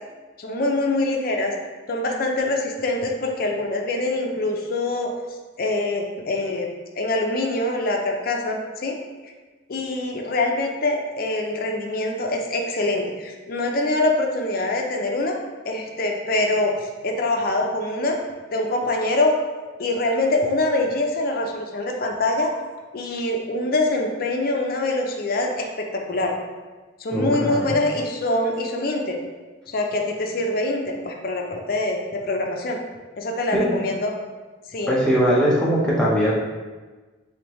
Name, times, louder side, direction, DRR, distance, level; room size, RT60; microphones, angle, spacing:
voice 1, 0.4-1.5 1.9-5.1 5.6-6.7 7.0-9.0 9.7-15.4 15.7-18.2 18.5-19.4 19.8-22.5 22.9-26.3 27.0-29.2 29.7-32.8 33.2-34.1 34.7-34.9, left 2 dB, 55° left, 2 dB, 0.5 m, -24 dB
voice 2, 27.1-27.6 33.5-33.7 34.9-36.3, equal, 5° left, -6 dB, 0.7 m, -20 dB
3.5 x 3.3 x 3.0 m, 1.3 s
head